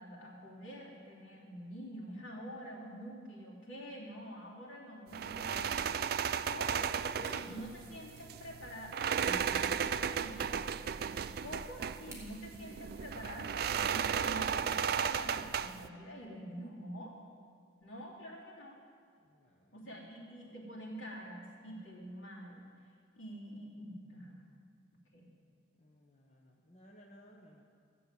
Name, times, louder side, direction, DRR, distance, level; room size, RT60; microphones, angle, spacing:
voice 1, 0.0-10.5 11.4-17.1 17.8-18.8 19.7-22.6 23.1-24.4 25.1-25.3, equal, 90° left, -4 dB, 3.1 m, -47 dB
sound 1, 5.1-15.9, right 7 dB, 50° right, 0.3 m, -35 dB
sound 2, 7.3-7.5 8.0-8.5 10.0-10.1 12.1-12.4, right 2 dB, 15° right, 2.2 m, -54 dB
voice 2, 19.2-20.2 25.8-27.6, equal, 35° left, -1 dB, 1.2 m, -60 dB
14.5 x 7.7 x 8.1 m, 2.2 s
head